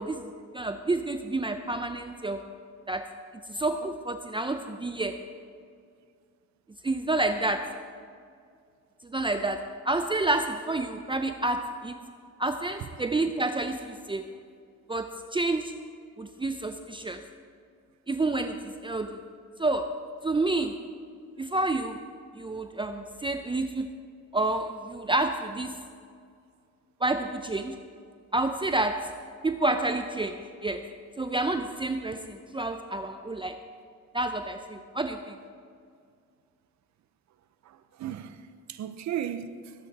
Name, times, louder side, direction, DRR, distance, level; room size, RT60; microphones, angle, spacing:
voice 1, 0.0-2.5 2.9-3.1 3.5-5.3 6.8-7.8 9.0-12.0 12.4-14.3 14.9-15.8 16.2-17.2 18.1-19.2 19.6-20.8 21.4-22.0 22.4-23.9 24.3-25.8 27.0-27.8 28.3-29.2 29.4-30.9 31.2-33.6 34.1-35.4, right 2 dB, 15° right, 0.6 m, -29 dB
voice 2, 37.6-39.7, right 10 dB, 65° right, 0.8 m, -36 dB
21.5 x 8.9 x 4.2 m
cardioid pair, 90°, 30 cm